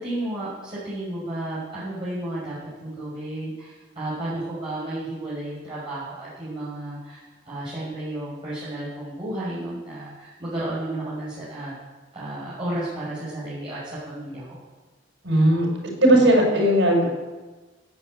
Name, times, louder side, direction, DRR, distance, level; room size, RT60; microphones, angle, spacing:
voice 1, 0.0-2.6 2.8-11.7 12.1-13.8 14.0-14.6, right 1 dB, 30° right, -10 dB, 5.9 m, -32 dB
voice 2, 15.2-15.7 16.0-17.1, right 1 dB, 85° right, 0 dB, 5.7 m, -17 dB
16.5 x 8.4 x 8.9 m, 1.2 s
head